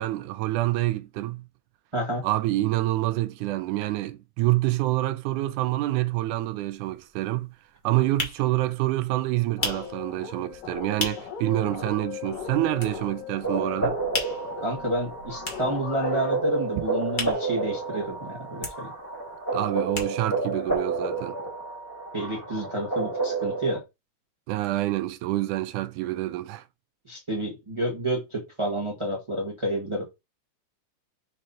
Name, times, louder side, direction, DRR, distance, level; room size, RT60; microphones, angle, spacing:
voice 1, 0.0-1.4 2.2-7.5 7.8-14.0 19.5-21.4 24.5-26.6, right 16 dB, 80° right, 2.0 m, -27 dB
voice 2, 1.9-2.2 14.6-18.9 22.1-23.8 27.1-30.0, right 1 dB, 30° right, 0.5 m, -29 dB
sound 1, 6.3-6.4 6.7-11.5 11.8-11.9 12.1-13.4 13.7-18.2 18.4-20.5 20.8-20.9 21.1-21.2, left 2 dB, 30° left, 0.8 m, -35 dB
sound 2, 9.6-16.3, left 7 dB, 80° left, 3.0 m, -38 dB
sound 3, 13.4-23.8, right 3 dB, 10° left, 1.3 m, -30 dB
6.3 x 5.3 x 2.9 m
omnidirectional pair, 3.8 m